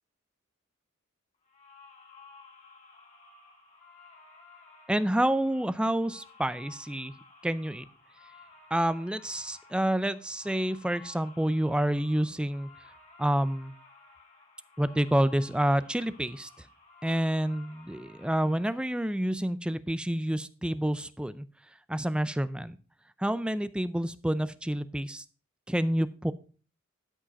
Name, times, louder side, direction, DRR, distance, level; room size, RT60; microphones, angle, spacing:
sound 1, 1.4-18.8, left 4 dB, 35° left, 2.2 m, -55 dB
voice 1, 4.9-7.1 7.4-7.8 8.7-12.7 13.2-13.7 14.8-16.5 17.0-21.5 21.9-22.8 23.2-25.2 25.7-26.3, right 1 dB, 5° right, 14 dB, 0.4 m, -28 dB
12.5 x 5.1 x 5.1 m, 0.37 s
head